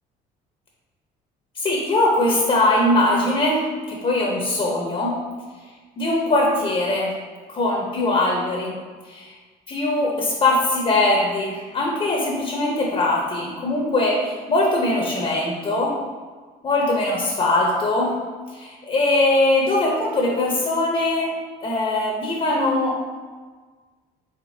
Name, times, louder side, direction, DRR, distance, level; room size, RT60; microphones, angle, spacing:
voice 1, 1.6-3.6 3.9-5.1 6.0-7.1 7.5-8.7 9.1-9.3 9.7-15.9 16.6-18.1 18.5-21.3 21.6-22.9, left 2 dB, 35° left, -3 dB, 0.9 m, -21 dB
5.0 x 3.8 x 2.7 m, 1.5 s
cardioid pair, 110°, 18 cm